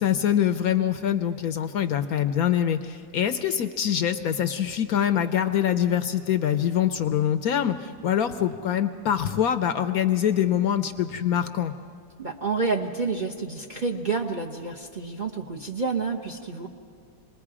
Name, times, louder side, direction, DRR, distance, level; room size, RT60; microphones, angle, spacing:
voice 1, 0.0-11.7, left 9 dB, 65° left, 9 dB, 1.0 m, -24 dB
voice 2, 12.2-16.7, right 4 dB, 35° right, 1 dB, 0.8 m, -29 dB
27.0 x 20.0 x 4.9 m, 2.3 s
omnidirectional pair, 1.8 m